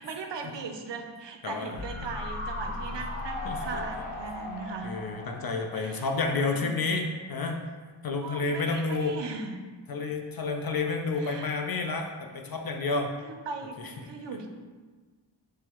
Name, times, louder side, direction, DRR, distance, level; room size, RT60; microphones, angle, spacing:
voice 1, 0.0-4.9 5.7-6.7 8.2-9.5 11.2-11.5 13.2-14.5, right 4 dB, 60° right, 4 dB, 0.5 m, -39 dB
voice 2, 1.4-1.8 2.6-2.7 3.4-3.6 4.8-7.6 8.0-9.2 9.9-13.1 13.8-14.1, left 3 dB, 50° left, 3 dB, 0.5 m, -30 dB
sound 1, 1.7-7.0 7.3-7.4, left 2 dB, 85° left, 0.8 m, -37 dB
6.3 x 2.1 x 2.9 m, 1.4 s
wide cardioid pair, 100°, 49 cm